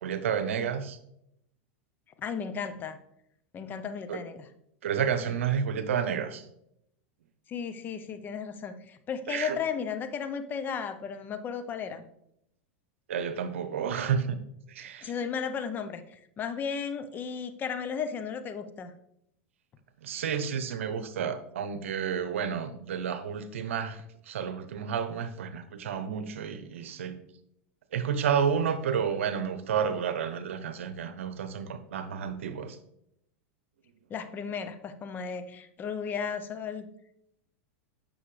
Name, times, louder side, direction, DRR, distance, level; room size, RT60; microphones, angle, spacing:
voice 1, 0.0-1.0 4.1-4.2 4.8-6.5 9.3-9.6 13.1-14.4 14.7-15.1 20.0-27.2 27.9-32.8, right 7 dB, 85° right, 11 dB, 0.8 m, -30 dB
voice 2, 2.2-3.0 3.5-4.5 5.3-5.4 7.5-12.0 14.8-18.9 34.1-36.9, left 6 dB, 30° left, 10 dB, 0.7 m, -35 dB
8.1 x 6.3 x 3.2 m, 0.77 s
hypercardioid pair, 120°, 7 cm